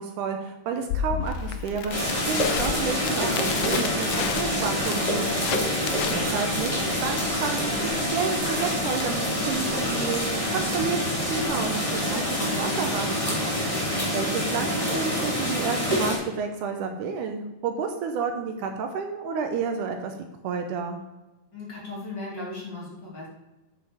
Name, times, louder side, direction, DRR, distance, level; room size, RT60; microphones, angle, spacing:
voice 1, 0.0-5.3 6.1-6.7 7.0-13.4 14.1-20.1 20.4-21.0, right 5 dB, 75° right, 5 dB, 2.1 m, -30 dB
Crackle, 0.9-12.9, left 8 dB, 80° left, 2.2 m, -34 dB
sound 1, 1.9-16.2, equal, 10° left, 2.1 m, -26 dB
voice 2, 5.8-6.2 13.9-14.4 21.5-23.3, left 2 dB, 35° left, -5 dB, 2.9 m, -38 dB
9.2 x 5.9 x 5.0 m, 1.0 s
omnidirectional pair, 3.9 m